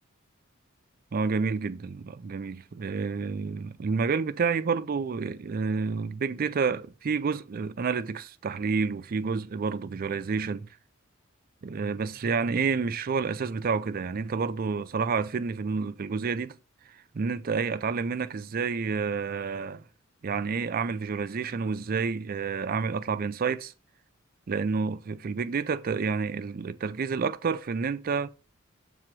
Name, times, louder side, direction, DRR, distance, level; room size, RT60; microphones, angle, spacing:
voice 1, 1.1-10.7 11.6-16.6 17.1-19.8 20.2-23.7 24.5-28.3, right 5 dB, 45° right, 0.4 m, -29 dB
7.5 x 3.0 x 6.0 m
head